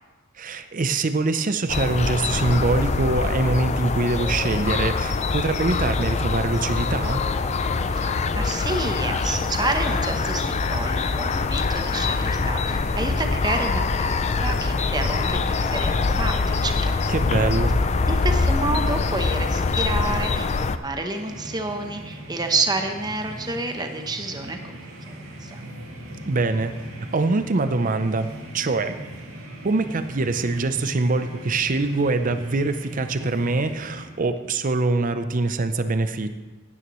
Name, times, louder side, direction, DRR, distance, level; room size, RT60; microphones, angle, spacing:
voice 1, 0.4-7.2 17.1-17.8 26.2-26.8 27.1-28.3 28.5-29.0 29.6-36.3, right 3 dB, 40° right, 9 dB, 0.6 m, -24 dB
sound 1, 1.7-20.8, left 4 dB, 30° left, 0.4 m, -24 dB
voice 2, 7.9-17.1 18.1-24.8 25.1-25.6, right 2 dB, 20° right, 5 dB, 0.9 m, -29 dB
sound 2, 21.1-34.1, right 1 dB, 85° right, 2.3 m, -40 dB
15.5 x 9.7 x 3.1 m, 1.3 s
head